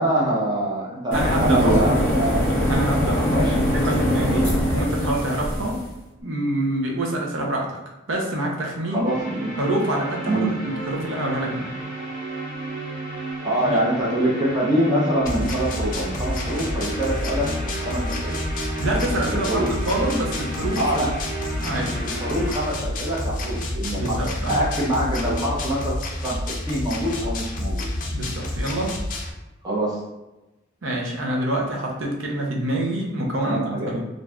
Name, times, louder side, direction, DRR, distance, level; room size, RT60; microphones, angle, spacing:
voice 1, 0.0-2.4 3.3-3.5 8.9-9.5 10.3-10.5 13.4-18.4 19.3-19.7 20.8-21.1 22.0-24.2 24.5-26.0 26.2-27.9 29.6-30.0 33.4-33.9, right 1 dB, 20° right, -5 dB, 0.6 m, -24 dB
sound 1, 1.1-5.9, equal, 10° left, 1.1 m, -22 dB
voice 2, 1.1-1.8 2.7-3.4 3.7-5.8 6.2-7.8 8.1-9.1 9.6-11.7 13.6-13.8 18.8-19.6 19.9-21.1 21.6-22.0 24.0-24.6 28.1-29.0 30.8-34.0, right 1 dB, 75° right, -1 dB, 0.6 m, -26 dB
sound 2, 9.0-22.5, right 2 dB, 45° right, 1.0 m, -33 dB
sound 3, 15.2-29.3, left 1 dB, 45° left, 0.4 m, -29 dB
2.5 x 2.3 x 3.2 m, 0.99 s
head